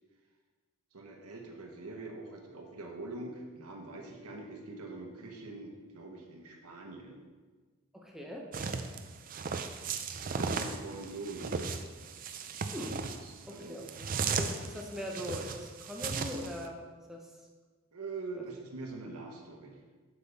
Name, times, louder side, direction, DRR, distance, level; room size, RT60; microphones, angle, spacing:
voice 1, 0.9-7.2 10.3-11.7 13.2-13.9 17.9-19.8, right 3 dB, 85° right, 1 dB, 1.2 m, -44 dB
voice 2, 7.9-8.5 12.7-13.0 13.5-13.8 14.4-16.8 17.1-17.5 18.4-18.5, left 1 dB, ahead, -1 dB, 0.9 m, -41 dB
sound 1, 8.5-16.6, right 5 dB, 40° right, 0.4 m, -36 dB
8.0 x 7.1 x 3.4 m, 1.4 s
head